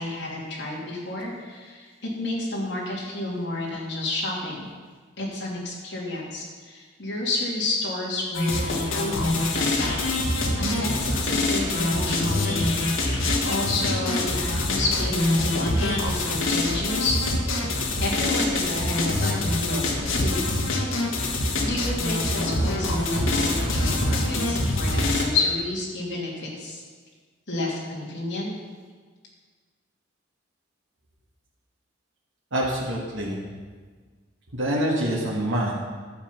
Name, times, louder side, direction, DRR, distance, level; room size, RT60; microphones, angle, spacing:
voice 1, 0.0-1.9 2.2-4.7 5.2-10.0 10.6-17.2 18.0-20.5 21.6-26.8 27.5-28.5, left 2 dB, 60° left, -4 dB, 2.9 m, -30 dB
sound 1, 8.3-25.2, left 2 dB, 80° left, 1.6 m, -25 dB
voice 2, 32.5-33.4 34.5-35.7, right 1 dB, 70° right, -5 dB, 1.8 m, -25 dB
11.5 x 7.3 x 5.8 m, 1.5 s
head